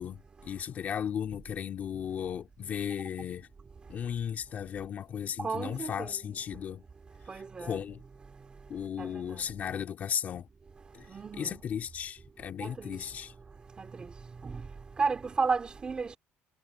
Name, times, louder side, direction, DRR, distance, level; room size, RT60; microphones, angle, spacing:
voice 1, 0.0-3.5 3.9-6.8 7.3-8.0 8.7-10.5 10.9-11.1 11.4-13.3, left 8 dB, 35° left, 2.5 m, -35 dB
voice 2, 5.4-6.2 7.3-7.8 9.0-9.5 11.1-11.6 12.6-13.0 13.8-14.1 14.4-14.7 15.0-16.2, right 4 dB, 20° right, 3.1 m, -33 dB
cardioid pair, 165°, 5 cm